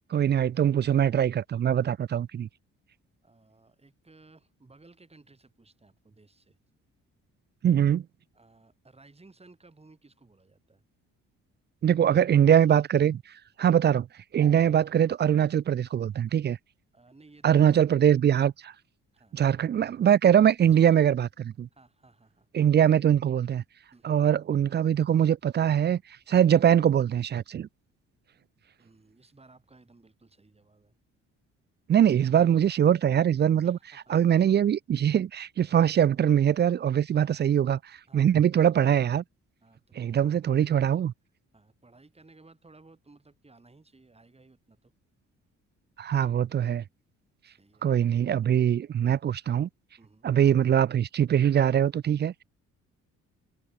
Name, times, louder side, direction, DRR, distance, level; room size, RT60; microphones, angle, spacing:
voice 1, 0.1-2.5 7.6-8.0 11.8-13.2 13.6-14.1 14.3-16.6 17.4-18.7 19.3-21.7 22.5-23.6 24.0-26.0 26.3-27.7 31.9-33.8 34.1-37.8 38.1-39.2 40.0-41.1 46.0-46.8 47.8-49.7 50.2-52.4, right 9 dB, 35° right, 0.4 m, -22 dB
voice 2, 3.2-6.6 8.3-10.8 12.1-12.2 16.9-17.7 19.1-19.4 20.6-20.9 21.7-22.5 23.9-24.2 28.8-31.0 33.6-34.2 37.1-37.5 38.1-38.4 39.6-40.1 40.6-40.7 41.5-44.9 47.4-48.0 50.0-50.3, right 3 dB, 20° right, 6.7 m, -57 dB
cardioid pair, 90°, 30 cm